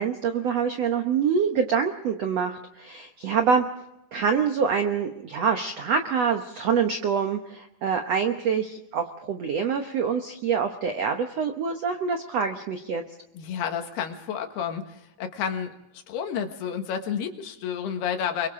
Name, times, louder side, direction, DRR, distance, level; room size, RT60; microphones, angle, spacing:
voice 1, 0.0-3.6 4.1-13.0, right 6 dB, 90° right, 5 dB, 1.4 m, -25 dB
voice 2, 13.4-18.5, left 8 dB, 75° left, 5 dB, 3.6 m, -31 dB
30.0 x 23.5 x 3.8 m, 0.87 s
omnidirectional pair, 4.7 m